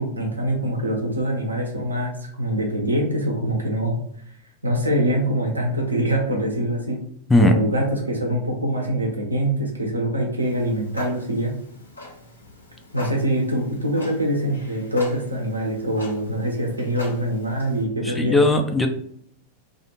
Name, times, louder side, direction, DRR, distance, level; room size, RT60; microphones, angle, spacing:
voice 1, 0.0-4.0 4.6-7.0 7.4-11.5 12.9-18.4, right 1 dB, 80° right, 0 dB, 0.7 m, -24 dB
Clock, 10.4-17.8, left 1 dB, 80° left, 0.7 m, -41 dB
voice 2, 18.0-18.9, left 2 dB, 5° left, 4 dB, 0.3 m, -17 dB
2.4 x 2.4 x 2.8 m, 0.66 s
figure-of-eight pair, 90°, 0 cm